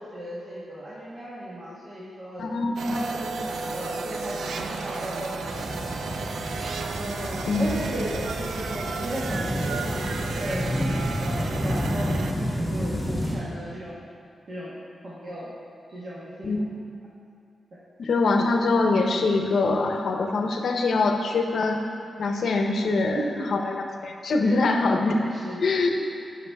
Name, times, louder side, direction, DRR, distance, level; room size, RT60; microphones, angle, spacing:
voice 1, 0.0-2.5 2.9-6.2 6.9-10.6 11.2-14.0 14.5-14.7 15.0-15.5 15.9-16.5 23.1-23.5 24.4-24.6 25.2-25.7, right 1 dB, 50° right, -8 dB, 1.2 m, -35 dB
voice 2, 2.4-2.7 7.5-7.7 16.4-16.6 18.0-21.8 22.2-23.2 23.5-25.2 25.6-26.1, left 3 dB, 65° left, 3 dB, 0.7 m, -23 dB
sound 1, 2.8-12.3, right 4 dB, 85° right, 0.4 m, -33 dB
sound 2, 5.4-13.3, equal, ahead, 1.8 m, -30 dB
9.8 x 6.0 x 3.4 m, 2.5 s
wide cardioid pair, 145°, 0 cm